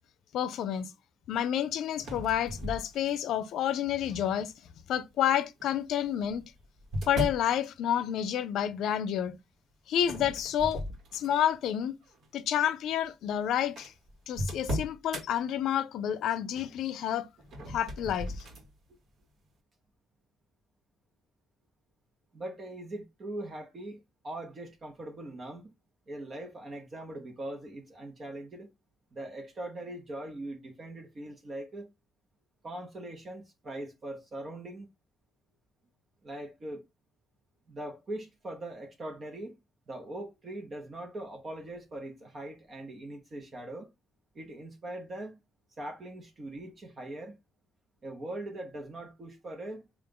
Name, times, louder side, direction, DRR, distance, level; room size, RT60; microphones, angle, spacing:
voice 1, 0.3-0.9 1.3-4.5 4.9-6.4 7.1-9.4 9.9-10.8 11.1-12.0 12.3-13.9 14.3-17.3 17.7-18.3, left 10 dB, 80° left, 0.4 m, -29 dB
sound 1, 2.0-3.4 4.1-4.5 5.6-7.5 10.0-11.6 12.0-12.3 13.0-13.1 13.3-13.4 13.8-15.3 17.4-18.7, equal, 65° right, 1.2 m, -37 dB
voice 2, 22.3-25.7 26.1-28.7 29.1-31.9 32.6-34.9 36.2-36.8 37.7-39.6 39.9-43.9 44.3-45.4 45.8-47.4 48.0-49.9, right 1 dB, 40° right, 0.9 m, -41 dB
3.7 x 2.4 x 3.7 m
cardioid pair, 90°, 0 cm